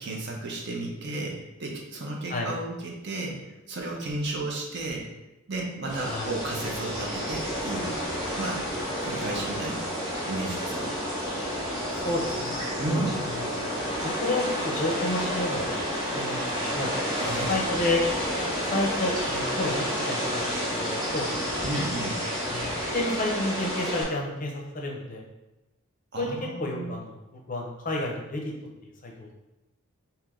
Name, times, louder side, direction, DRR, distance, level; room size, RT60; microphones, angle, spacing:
voice 1, 0.0-5.1 5.5-8.0 8.4-8.6 9.0-9.9 10.3-11.0 12.8-13.2 17.1-17.5 21.6-22.2 26.1-26.9, right 2 dB, 50° right, -1 dB, 0.7 m, -33 dB
sound 1, 5.9-24.0, equal, 20° right, 1.2 m, -30 dB
voice 2, 12.0-12.5 13.3-13.6 14.0-15.8 16.1-16.9 17.5-18.1 18.7-21.4 22.5-22.7 22.9-25.2 26.2-26.3 26.6-28.5 29.0-29.3, left 2 dB, 35° left, 0 dB, 0.6 m, -30 dB
3.3 x 2.9 x 3.6 m, 0.99 s
head